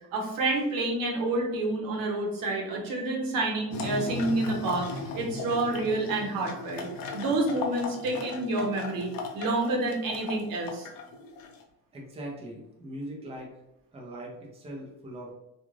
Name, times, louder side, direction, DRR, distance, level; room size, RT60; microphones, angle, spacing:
voice 1, 0.1-6.9 7.1-9.1 9.3-10.9, right 2 dB, 75° right, -1 dB, 0.9 m, -28 dB
sound 1, 3.7-11.6, left 3 dB, 80° left, 0.6 m, -37 dB
voice 2, 11.9-13.5 13.9-15.3, right 1 dB, 20° right, -2 dB, 0.6 m, -40 dB
2.4 x 2.4 x 3.1 m, 0.85 s
cardioid pair, 140°, 34 cm